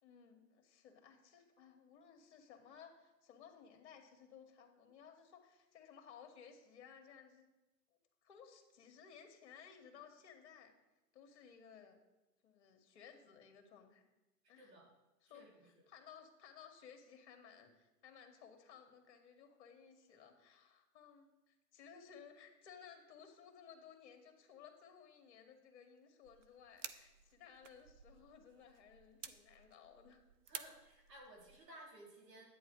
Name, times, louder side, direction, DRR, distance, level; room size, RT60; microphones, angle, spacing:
voice 1, 0.0-7.5 8.2-10.7 11.1-12.0 12.4-14.0 14.5-14.7 15.2-30.2, left 7 dB, 45° left, 4 dB, 1.8 m, -59 dB
voice 2, 15.3-15.7 30.5-32.4, right 1 dB, 80° right, -2 dB, 4.3 m, -57 dB
sound 1, 26.2-31.6, right 8 dB, 50° right, 0.7 m, -54 dB
11.0 x 9.1 x 4.6 m, 1.0 s
hypercardioid pair, 150°, 49 cm